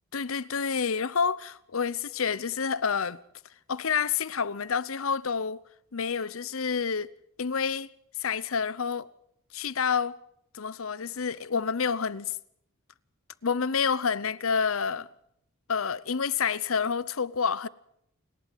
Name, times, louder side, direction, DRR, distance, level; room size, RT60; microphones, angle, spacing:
voice 1, 0.1-3.2 3.7-5.6 5.9-7.1 7.4-7.9 8.2-9.1 9.5-10.2 10.5-12.4 13.4-15.1 15.7-17.7, left 6 dB, 70° left, 0.8 m, -28 dB
28.5 x 11.5 x 9.1 m
head